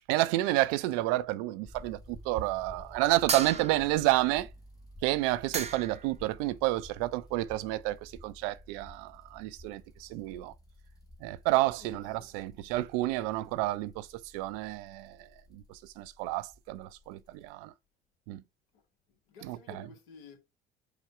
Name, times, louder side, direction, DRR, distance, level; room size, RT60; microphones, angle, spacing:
voice 1, 0.1-4.5 5.0-10.5 11.2-17.7 18.3-18.4 19.5-19.6, right 17 dB, 65° right, 0.4 m, -30 dB
sound 1, 1.6-17.5, left 1 dB, 10° left, 1.0 m, -53 dB
voice 2, 2.6-3.0 10.0-10.1 11.7-12.4 18.7-18.8 19.1-20.4, left 6 dB, 75° left, 1.3 m, -54 dB
sound 2, 3.3-4.1 5.2-5.3 5.5-6.1, right 5 dB, 20° right, 0.6 m, -34 dB
4.9 x 2.2 x 4.4 m
hypercardioid pair, 60°, 30 cm